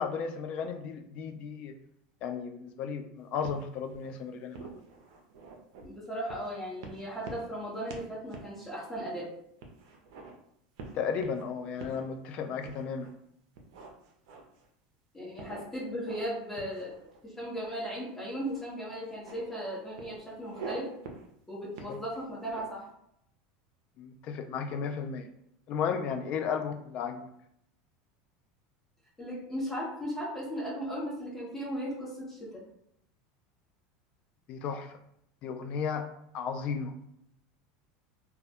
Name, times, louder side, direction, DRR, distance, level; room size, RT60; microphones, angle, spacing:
voice 1, 0.0-1.7 2.2-4.8 10.9-13.1 21.9-22.0 24.0-25.3 25.7-27.3 34.5-34.9 35.4-36.1 36.3-36.9, left 6 dB, 45° left, 7 dB, 0.3 m, -34 dB
sound 1, 3.4-4.1 4.5-5.9 6.3-6.5 6.8-7.6 7.9-8.1 8.3-8.5 8.9-9.0 9.6-10.3 10.8-11.4 11.8-12.0 12.6-13.1 13.5-14.7 15.4-16.3 16.5-17.4 18.4-18.6 18.9-19.4 20.0-20.8 21.0-21.3 21.7-22.8, right 4 dB, 75° right, 0.5 m, -45 dB
voice 2, 5.8-9.3 15.1-20.8 21.5-22.8 29.2-32.5, equal, 10° left, -6 dB, 1.0 m, -37 dB
2.2 x 2.0 x 2.8 m, 0.74 s
supercardioid pair, 130°, 3 cm